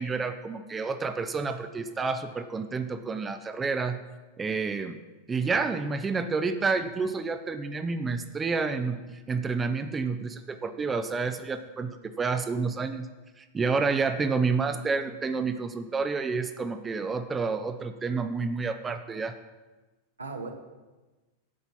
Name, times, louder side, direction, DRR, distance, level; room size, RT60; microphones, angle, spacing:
voice 1, 0.0-4.0 4.4-5.0 5.3-13.1 13.4-19.4, right 4 dB, 15° right, 8 dB, 0.5 m, -29 dB
voice 2, 14.2-14.8 20.2-20.5, right 4 dB, 75° right, 4 dB, 1.2 m, -40 dB
9.9 x 5.3 x 5.9 m, 1.2 s
figure-of-eight pair, 90°, 0 cm